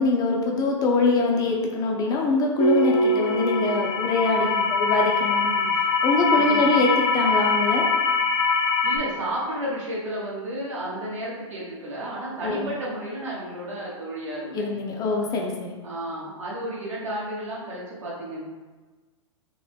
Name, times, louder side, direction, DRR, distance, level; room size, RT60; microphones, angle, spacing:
voice 1, 0.0-5.5 6.0-7.8 12.4-12.7 14.5-15.7, left 3 dB, 20° left, 0 dB, 0.5 m, -23 dB
sound 1, 2.6-9.0, left 3 dB, 70° left, 0.7 m, -23 dB
voice 2, 4.3-4.7 5.5-5.7 6.3-6.7 8.8-14.6 15.8-18.4, right 1 dB, 70° right, -6 dB, 1.4 m, -32 dB
3.6 x 2.0 x 3.5 m, 1.3 s
figure-of-eight pair, 110°, 17 cm